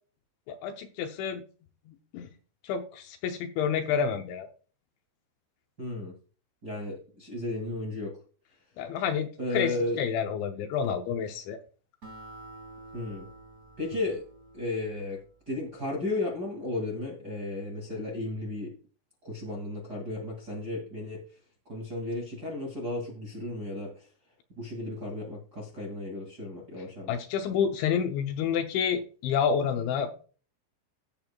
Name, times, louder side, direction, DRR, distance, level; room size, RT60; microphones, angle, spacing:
voice 1, 0.5-1.4 1.9-2.3 2.6-4.5 8.8-9.3 9.5-11.6 27.1-30.1, left 7 dB, 80° left, 6 dB, 2.9 m, -29 dB
voice 2, 5.8-6.1 6.6-8.2 9.4-10.0 12.9-13.3 13.8-14.2 14.5-15.2 15.4-18.7 19.2-21.2 21.7-24.1 24.6-27.2 27.5-27.6, left 2 dB, 35° right, -2 dB, 1.6 m, -34 dB
Acoustic guitar, 12.0-15.6, right 2 dB, 55° right, 0.9 m, -49 dB
15.5 x 7.7 x 2.3 m, 0.38 s
omnidirectional pair, 5.7 m